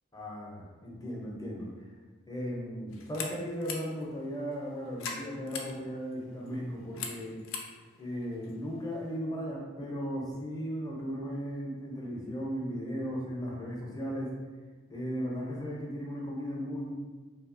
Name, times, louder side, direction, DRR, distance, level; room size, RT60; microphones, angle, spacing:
voice 1, 0.1-1.7 2.3-7.4 8.0-14.4 14.9-16.9, equal, 20° left, -2 dB, 0.5 m, -36 dB
sound 1, 2.9-9.2, left 5 dB, 70° left, 0.4 m, -44 dB
2.7 x 2.6 x 2.5 m, 1.4 s
head